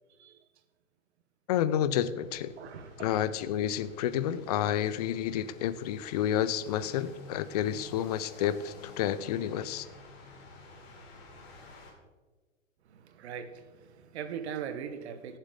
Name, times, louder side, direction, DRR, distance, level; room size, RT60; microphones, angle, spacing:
voice 1, 1.5-2.5 3.0-9.9, left 10 dB, 30° left, 0.5 m, -30 dB
sound 1, 2.2-11.9, left 2 dB, 50° left, 2.9 m, -51 dB
voice 2, 2.6-3.3 12.9-15.4, right 8 dB, 55° right, 1.2 m, -40 dB
16.0 x 7.3 x 3.8 m
hypercardioid pair, 125°, 40 cm